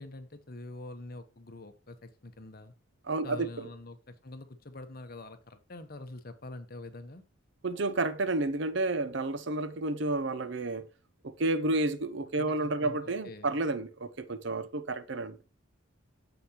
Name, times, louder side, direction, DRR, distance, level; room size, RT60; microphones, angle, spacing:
voice 1, 0.0-2.7 3.2-7.2 12.3-13.0 13.2-13.5, left 2 dB, 50° left, 1.1 m, -45 dB
voice 2, 3.1-3.7 7.6-10.9 11.2-15.4, right 2 dB, 60° right, 0.8 m, -31 dB
9.3 x 7.0 x 3.0 m
head